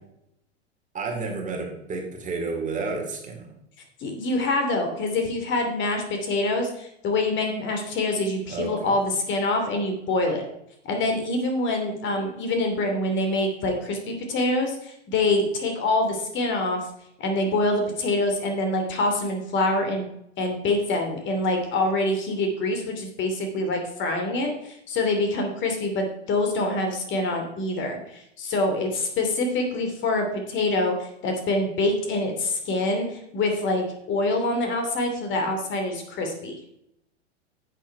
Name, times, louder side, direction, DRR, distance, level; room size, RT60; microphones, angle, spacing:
voice 1, 0.9-3.6 8.5-9.0, right 4 dB, 20° right, 2 dB, 2.5 m, -31 dB
voice 2, 4.0-10.4 10.8-16.8 17.2-20.1 20.4-36.5, left 2 dB, 35° left, 4 dB, 2.7 m, -25 dB
10.0 x 8.5 x 4.8 m, 0.78 s
figure-of-eight pair, 95°, 35 cm